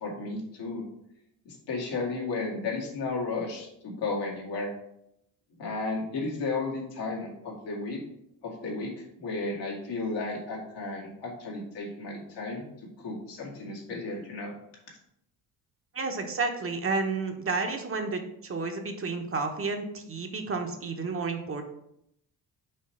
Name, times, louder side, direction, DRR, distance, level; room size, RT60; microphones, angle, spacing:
voice 1, 0.0-0.8 1.5-4.7 5.6-8.0 8.4-12.7 13.0-14.5, left 3 dB, 75° left, -2 dB, 2.1 m, -33 dB
voice 2, 15.9-21.6, right 4 dB, 30° right, 4 dB, 0.9 m, -31 dB
5.4 x 3.1 x 5.6 m, 0.78 s
cardioid pair, 80°, 42 cm